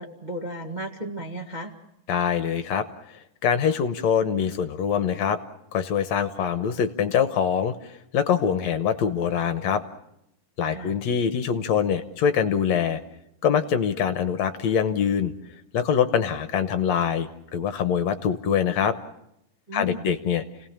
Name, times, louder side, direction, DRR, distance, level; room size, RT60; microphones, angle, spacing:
voice 1, 0.0-1.7 10.7-10.9 19.7-20.1, right 1 dB, 20° right, 1 dB, 1.3 m, -34 dB
voice 2, 2.1-2.9 3.4-5.4 5.7-9.8 10.6-13.0 13.4-15.3 15.7-19.0 19.7-20.4, left 7 dB, 70° left, 10 dB, 2.1 m, -24 dB
30.0 x 18.5 x 7.3 m, 0.82 s
omnidirectional pair, 3.5 m